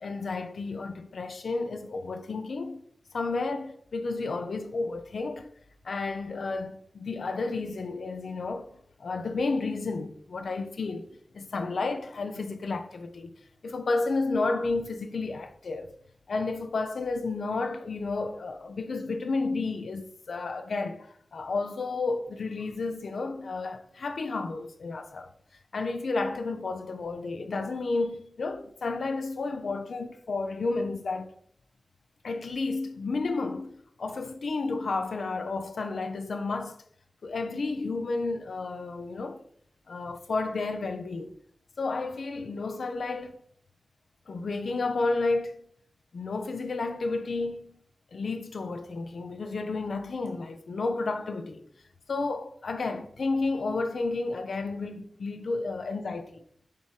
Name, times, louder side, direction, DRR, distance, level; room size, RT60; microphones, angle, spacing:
voice 1, 0.0-2.8 3.1-5.5 5.8-8.7 9.0-13.3 13.6-15.9 16.3-25.3 25.7-31.3 32.2-33.7 34.0-36.8 37.2-39.4 39.9-41.4 41.8-43.4 44.3-45.7 46.1-47.8 48.1-51.7 52.1-56.4, left 3 dB, 85° left, 0.7 m, -31 dB
7.1 x 4.3 x 4.8 m
wide cardioid pair, 60°, 0 cm